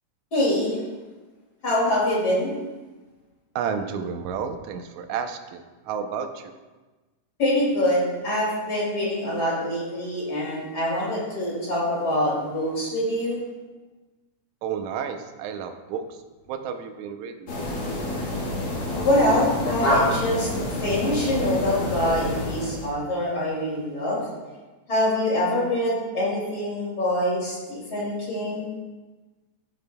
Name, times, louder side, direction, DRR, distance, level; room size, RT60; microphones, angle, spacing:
voice 1, 0.3-0.8 1.6-2.5 7.4-13.4 19.0-20.5 20.8-24.2 24.9-28.7, left 1 dB, 35° left, -6 dB, 2.7 m, -24 dB
voice 2, 3.6-6.5 14.6-16.2 16.5-17.5, right 7 dB, 80° right, 7 dB, 2.0 m, -31 dB
sound 1, 17.5-22.9, left 1 dB, 50° left, 2.2 m, -27 dB
13.0 x 6.9 x 2.2 m, 1.2 s
omnidirectional pair, 3.3 m